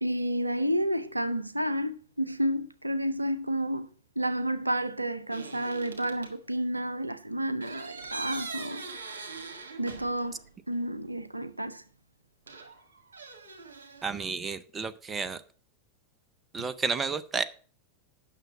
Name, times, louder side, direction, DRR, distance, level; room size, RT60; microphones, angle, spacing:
voice 1, 0.0-3.9 4.2-8.8 9.8-10.4 10.7-11.8, equal, 85° right, 0.5 m, -30 dB
sound 1, 5.3-6.3 7.6-10.5 10.7-10.8 12.5-14.1, right 4 dB, 65° right, 1.8 m, -42 dB
voice 2, 14.0-15.4 16.5-17.4, right 4 dB, 20° right, 0.6 m, -31 dB
9.1 x 6.3 x 5.9 m
figure-of-eight pair, 90°, 0 cm